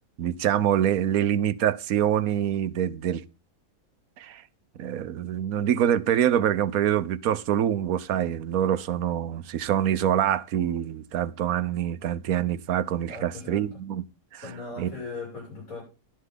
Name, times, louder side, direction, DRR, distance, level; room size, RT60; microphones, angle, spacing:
voice 1, 0.2-3.2 4.2-4.4 4.8-14.0 14.3-14.4 14.8-14.9, right 10 dB, 80° right, 1.2 m, -25 dB
voice 2, 13.1-13.8 14.4-15.8, left 3 dB, 70° left, 7.2 m, -39 dB
12.0 x 11.5 x 3.8 m
omnidirectional pair, 1.5 m